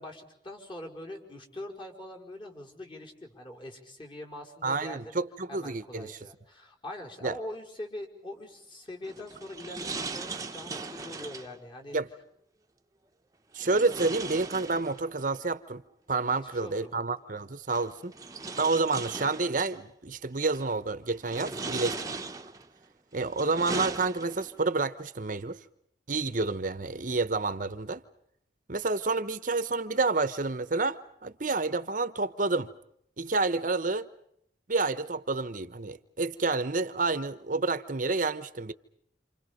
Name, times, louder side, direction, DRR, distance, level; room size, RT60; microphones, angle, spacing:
voice 1, 0.0-5.2 5.5-12.0 16.4-17.0 21.4-21.7, left 1 dB, 25° left, 5.1 m, -43 dB
voice 2, 4.6-6.2 7.2-7.4 11.9-12.1 13.5-15.8 16.1-18.1 18.6-21.9 23.1-25.6 26.1-28.0 28.7-32.7 33.2-34.1 34.7-38.7, right 3 dB, 45° right, 1.0 m, -29 dB
sound 1, 9.0-11.6 13.6-15.2 16.6-16.7 17.7-19.8 20.4-20.8 21.2-22.7 23.2-24.6, right 3 dB, 20° right, 1.1 m, -38 dB
28.5 x 28.5 x 5.3 m
head